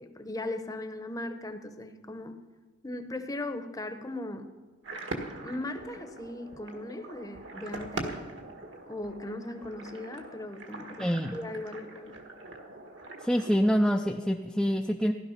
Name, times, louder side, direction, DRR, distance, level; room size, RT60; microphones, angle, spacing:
voice 1, 0.0-2.4 2.8-4.5 5.4-8.1 8.9-12.2, left 2 dB, 20° left, 8 dB, 0.8 m, -38 dB
sound 1, 4.8-13.7, right 2 dB, 70° right, 1.7 m, -42 dB
voice 2, 11.0-11.4 13.2-15.1, equal, ahead, 2 dB, 0.4 m, -26 dB
15.5 x 12.0 x 5.7 m, 1.3 s
head